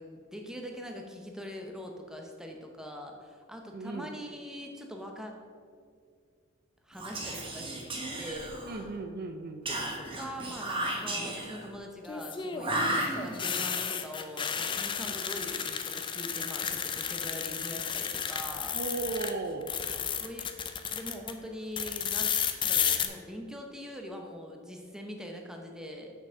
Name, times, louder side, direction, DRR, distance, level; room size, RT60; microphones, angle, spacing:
voice 1, 0.0-5.3 6.8-7.8 8.2-8.6 10.1-18.8 20.2-20.5 20.9-22.3 22.6-26.1, equal, 5° right, 2 dB, 0.8 m, -42 dB
voice 2, 3.7-4.1 8.7-9.6 13.1-13.2 15.0-15.2 18.7-19.7, right 3 dB, 45° right, 6 dB, 0.5 m, -36 dB
Whispering, 6.9-8.9 9.7-11.7 12.6-13.6, right 1 dB, 25° right, 1.2 m, -34 dB
sound 1, 9.7-10.2 12.0-19.3 19.6-21.3 21.8-23.1, left 7 dB, 20° left, 0.4 m, -33 dB
6.6 x 6.1 x 6.3 m, 2.2 s
head